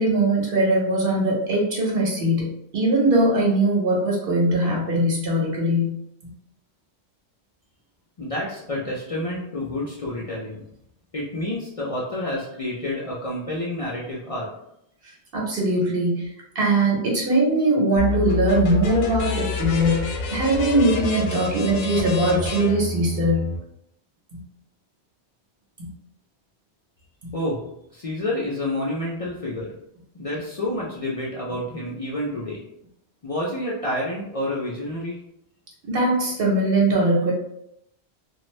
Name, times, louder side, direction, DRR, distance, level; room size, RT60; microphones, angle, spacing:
voice 1, 0.0-6.0 15.3-16.3 16.5-23.5 35.9-37.3, right 1 dB, 65° right, -3 dB, 1.0 m, -21 dB
voice 2, 8.2-10.6 11.1-14.5 27.3-27.6 27.9-29.8 30.1-32.6 33.2-35.2, left 1 dB, 45° left, -6 dB, 0.5 m, -29 dB
urban street warrior bassloop, 18.0-23.6, left 4 dB, 75° left, 0.8 m, -28 dB
2.5 x 2.3 x 3.1 m, 0.78 s
omnidirectional pair, 1.1 m